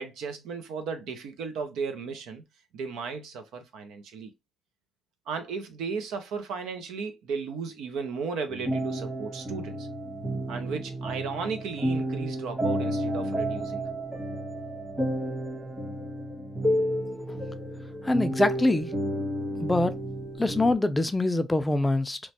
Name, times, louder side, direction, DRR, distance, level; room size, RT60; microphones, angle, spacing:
voice 1, 0.0-2.4 2.7-4.3 5.3-9.9 10.5-13.9, right 5 dB, 85° right, 0.6 m, -35 dB
sound 1, 8.5-20.7, right 1 dB, 30° right, 1.5 m, -31 dB
voice 2, 18.0-18.9 19.6-19.9 20.4-22.2, left 2 dB, 15° left, 0.4 m, -24 dB
3.0 x 2.2 x 2.8 m
cardioid pair, 90°, 0 cm